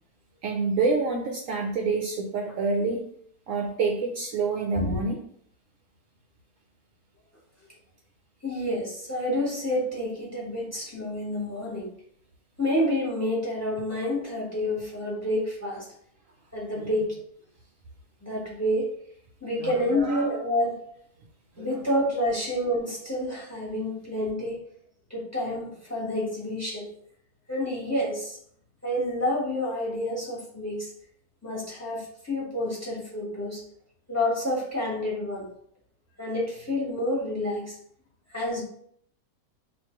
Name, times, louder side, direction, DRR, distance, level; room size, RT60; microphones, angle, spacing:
voice 1, 0.4-3.0 3.5-5.2 16.8-16.9 19.6-20.3 21.6-21.7, right 4 dB, 65° right, 0 dB, 0.9 m, -27 dB
voice 2, 8.4-11.9 12.6-15.9 16.5-17.1 18.2-18.9 19.4-20.8 21.6-24.6 25.1-26.9 27.5-28.4 28.8-30.9 31.4-33.6 34.1-35.5 36.2-37.8 38.3-38.6, left 1 dB, 10° left, -5 dB, 1.2 m, -28 dB
3.1 x 2.5 x 4.3 m, 0.66 s
omnidirectional pair, 1.6 m